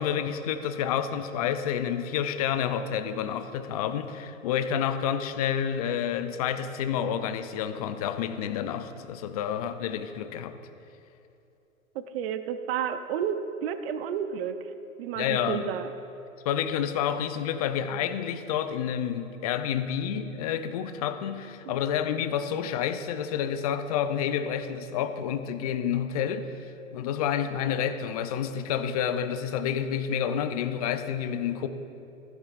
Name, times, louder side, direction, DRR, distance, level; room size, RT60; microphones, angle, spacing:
voice 1, 0.0-10.5 15.2-15.7 16.4-26.6 26.9-31.7, left 8 dB, 30° left, 9 dB, 0.4 m, -29 dB
voice 2, 11.9-14.7 15.0-15.9 21.7-21.8, right 8 dB, 45° right, 10 dB, 0.6 m, -31 dB
15.0 x 11.0 x 2.5 m, 2.8 s
hypercardioid pair, 125°, 43 cm